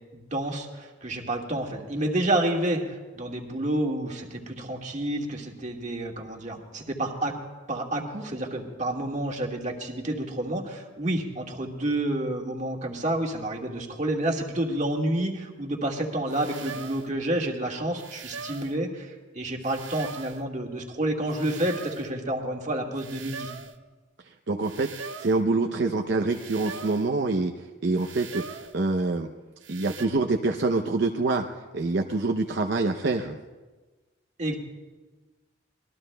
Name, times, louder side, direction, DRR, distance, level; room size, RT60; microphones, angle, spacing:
voice 1, 0.1-7.4 7.7-23.5 34.4-34.6, right 1 dB, 40° right, 1 dB, 1.7 m, -29 dB
sound 1, 16.3-17.1 17.9-18.8 19.6-20.4 21.3-22.1 22.9-23.8 24.6-25.4 26.3-27.1 27.9-28.8 29.6-30.1, right 5 dB, 85° right, 1.0 m, -41 dB
voice 2, 24.2-29.3 29.7-31.5 31.7-33.4, right 3 dB, 65° right, 3 dB, 0.7 m, -26 dB
25.0 x 20.0 x 2.2 m, 1.3 s
head